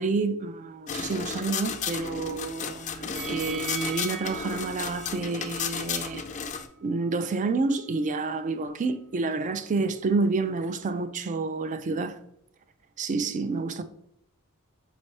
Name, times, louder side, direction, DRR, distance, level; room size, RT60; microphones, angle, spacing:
voice 1, 0.0-6.3 6.8-12.2 13.0-14.0, right 3 dB, 35° right, 0.4 m, -29 dB
sound 1, 0.9-6.7, left 6 dB, 35° left, 0.4 m, -34 dB
sound 2, 3.1-6.2 6.6-6.7, right 7 dB, 60° right, 1.1 m, -40 dB
5.1 x 3.3 x 2.8 m
head